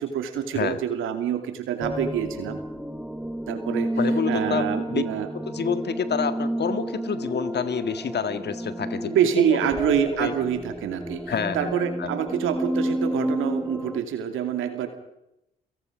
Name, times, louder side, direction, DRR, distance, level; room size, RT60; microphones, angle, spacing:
voice 1, 0.5-1.4 1.8-2.5 3.5-3.9 4.3-5.3 9.1-11.2 11.5-12.5 13.0-14.9, right 9 dB, 80° right, 7 dB, 2.6 m, -25 dB
sound 1, 1.8-14.0, right 1 dB, ahead, 2.0 m, -30 dB
voice 2, 4.0-5.0 5.3-9.1 9.5-9.7 10.1-10.3 11.3-12.1, left 6 dB, 55° left, 11 dB, 1.8 m, -28 dB
29.5 x 17.5 x 5.2 m, 0.86 s
supercardioid pair, 50°, 21 cm